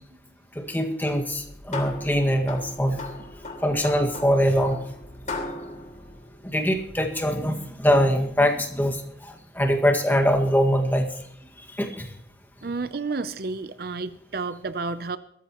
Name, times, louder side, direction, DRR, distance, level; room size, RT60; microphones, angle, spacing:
voice 1, 0.6-3.0 3.6-4.8 6.4-9.0 9.3-11.1 11.7-12.1, equal, 10° left, 3 dB, 1.8 m, -23 dB
sound 1, 1.3-7.1, left 2 dB, 40° left, 3.0 m, -38 dB
voice 2, 12.6-15.2, right 3 dB, 50° right, 13 dB, 0.6 m, -31 dB
21.0 x 14.0 x 3.0 m, 0.72 s
head